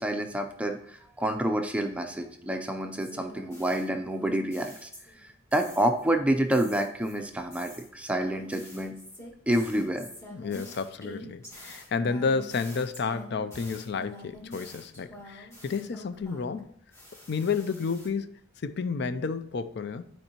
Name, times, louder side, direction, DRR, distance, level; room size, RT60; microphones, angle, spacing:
voice 1, 0.0-4.9 5.2-8.9 9.5-10.1, right 1 dB, 5° right, 0.5 m, -28 dB
sound 1, 2.9-5.2 5.5-6.1 6.5-16.6 16.9-18.1, left 1 dB, 15° left, 1.7 m, -47 dB
voice 2, 10.3-16.7 17.3-20.1, left 5 dB, 60° left, 0.5 m, -31 dB
12.0 x 4.5 x 2.9 m
head